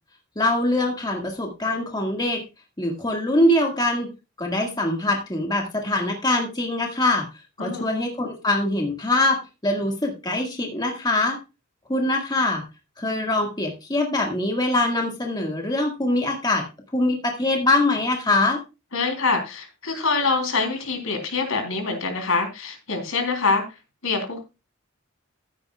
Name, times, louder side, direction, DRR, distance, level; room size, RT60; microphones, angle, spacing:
voice 1, 0.4-2.4 2.8-4.1 4.4-7.3 7.6-11.4 11.9-12.6 13.0-16.6 16.9-18.6, left 2 dB, 20° left, 1 dB, 1.7 m, -23 dB
voice 2, 18.9-23.6 24.0-24.4, left 4 dB, 75° left, 5 dB, 3.2 m, -25 dB
14.5 x 9.6 x 2.3 m, 0.27 s
head